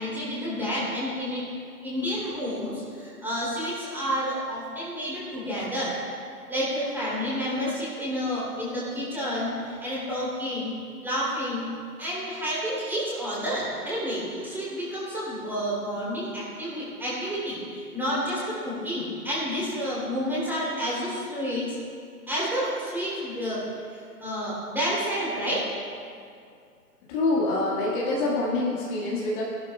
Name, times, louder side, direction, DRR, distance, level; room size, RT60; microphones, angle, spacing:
voice 1, 0.0-1.5 1.8-5.9 6.5-10.7 11.0-11.7 12.0-21.8 22.3-23.6 23.9-25.7, equal, 5° right, -9 dB, 3.2 m, -30 dB
voice 2, 27.1-29.4, left 2 dB, 30° left, -6 dB, 1.9 m, -25 dB
18.0 x 12.0 x 2.4 m, 2.3 s
figure-of-eight pair, 130°, 48 cm